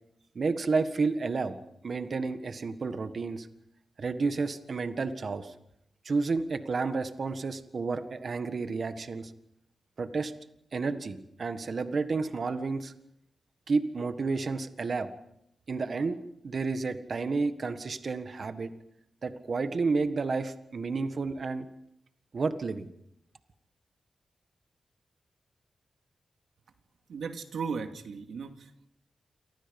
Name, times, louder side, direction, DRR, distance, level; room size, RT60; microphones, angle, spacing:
voice 1, 0.3-1.5 1.8-3.5 4.0-5.5 6.0-9.3 10.0-10.3 10.7-12.9 13.7-15.1 15.7-16.2 16.4-18.7 19.2-21.7 22.3-22.9, right 4 dB, 50° right, 9 dB, 1.6 m, -31 dB
voice 2, 27.1-28.9, right 5 dB, 85° right, 6 dB, 2.4 m, -36 dB
29.0 x 24.0 x 5.4 m, 0.79 s
wide cardioid pair, 115°, 0 cm